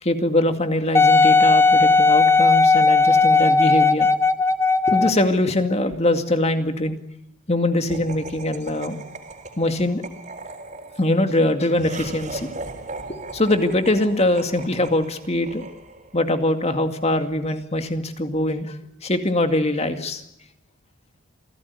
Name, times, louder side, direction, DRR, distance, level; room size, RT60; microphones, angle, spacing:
voice 1, 0.0-4.1 4.9-7.0 7.5-9.0 9.6-10.0 11.0-12.5 13.1-15.6 16.1-18.8 19.0-20.2, left 1 dB, 30° left, 7 dB, 2.3 m, -22 dB
Wind instrument woodwind instrument, 0.9-5.3 5.9-6.0, left 4 dB, 10° left, 1.1 m, -16 dB
Laughter, 7.9-16.3, right 2 dB, 35° right, 4.1 m, -38 dB
28.0 x 17.5 x 9.7 m, 0.81 s
head